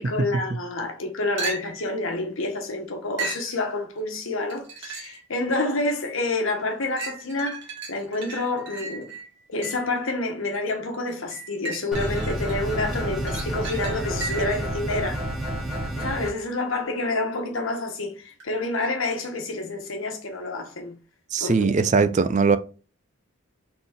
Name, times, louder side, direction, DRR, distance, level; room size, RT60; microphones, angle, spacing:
voice 1, 0.0-7.6 7.9-9.1 9.5-15.2 16.0-21.0 21.4-21.7, left 2 dB, 75° left, 1.2 m, -28 dB
sound 1, 1.4-1.9 3.2-3.5 4.5-5.2 5.8-5.9 7.0-9.9 11.3-12.5 12.9-14.6 18.4-18.5, right 4 dB, 55° right, 1.9 m, -35 dB
sound 2, 11.9-16.3, right 1 dB, ahead, 1.3 m, -29 dB
voice 2, 21.3-22.6, right 4 dB, 35° right, 0.4 m, -20 dB
4.0 x 3.8 x 3.4 m
head